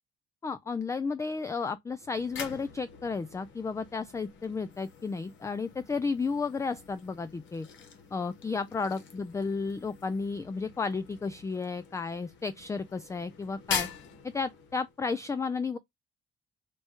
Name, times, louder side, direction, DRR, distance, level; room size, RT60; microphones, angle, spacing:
voice 1, 0.4-7.7 8.1-13.9 14.2-15.8, left 4 dB, 15° left, 0.3 m, -33 dB
sound 1, 2.0-15.0, left 7 dB, 75° left, 1.2 m, -43 dB
4.5 x 2.3 x 4.3 m
cardioid pair, 90°, 20 cm